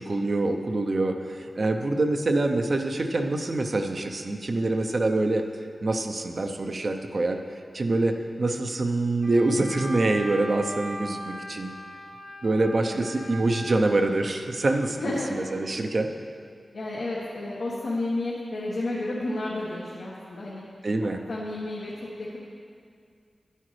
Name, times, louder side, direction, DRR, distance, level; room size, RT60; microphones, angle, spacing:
voice 1, 0.0-5.4 5.8-7.4 7.7-11.7 12.4-15.0 15.3-16.1 20.8-21.2, right 2 dB, 60° right, 4 dB, 0.7 m, -25 dB
Wind instrument woodwind instrument, 9.2-13.9, equal, 85° right, 2.1 m, -39 dB
voice 2, 15.0-15.3 16.7-20.6 21.3-22.1, left 2 dB, 85° left, -7 dB, 1.3 m, -31 dB
10.5 x 9.8 x 3.2 m, 2.2 s
cardioid pair, 55°, 0 cm